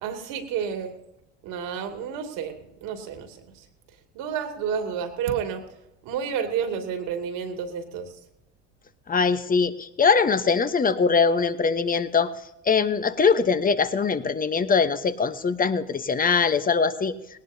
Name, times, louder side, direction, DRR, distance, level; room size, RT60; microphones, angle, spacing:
voice 1, 0.0-0.9 1.4-3.4 4.1-5.6 6.0-8.1, right 7 dB, 70° right, 5 dB, 2.5 m, -30 dB
voice 2, 9.1-12.3 12.7-17.2, left 5 dB, 25° left, 12 dB, 1.0 m, -22 dB
18.5 x 18.5 x 2.8 m, 0.88 s
supercardioid pair, 90°, 36 cm